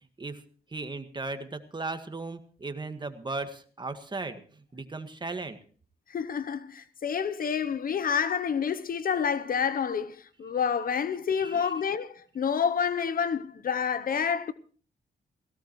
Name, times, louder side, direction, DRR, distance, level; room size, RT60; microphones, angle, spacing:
voice 1, 0.7-5.6 11.4-11.7, right 3 dB, 25° right, 1.7 m, -37 dB
voice 2, 6.1-14.5, left 7 dB, 55° left, 0.8 m, -28 dB
18.0 x 17.5 x 3.1 m
cardioid pair, 85°, 17 cm